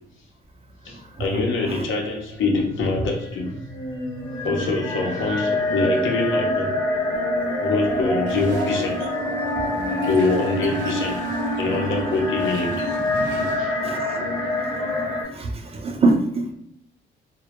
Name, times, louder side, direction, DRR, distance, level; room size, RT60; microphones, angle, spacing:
voice 1, 0.8-3.6 4.4-6.8 7.6-9.0 10.0-11.2 11.6-12.9 13.4-13.9, left 3 dB, 75° left, 0.7 m, -24 dB
sound 1, 2.6-15.2, left 1 dB, 25° left, 0.8 m, -26 dB
sound 2, 8.3-13.5, right 3 dB, 70° right, 0.7 m, -39 dB
voice 2, 9.8-10.1 13.8-14.4 14.7-14.8 15.3-16.5, right 3 dB, 30° right, 0.4 m, -25 dB
2.2 x 2.0 x 2.9 m
cardioid pair, 90°, 20 cm